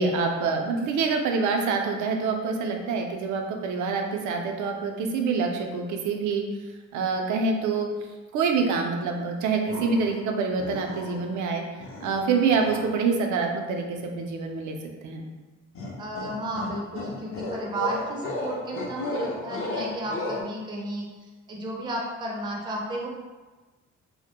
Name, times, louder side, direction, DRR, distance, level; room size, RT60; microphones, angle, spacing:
voice 1, 0.0-6.4 6.9-7.9 8.3-11.6 12.0-15.2, right 4 dB, 75° right, 3 dB, 0.5 m, -26 dB
sound 1, 9.7-10.2 10.6-11.4 11.8-13.0 15.7-20.4, left 2 dB, 45° left, 0.5 m, -34 dB
voice 2, 16.0-23.1, right 1 dB, 15° right, -2 dB, 0.4 m, -33 dB
2.1 x 2.1 x 2.8 m, 1.3 s
cardioid pair, 90°, 30 cm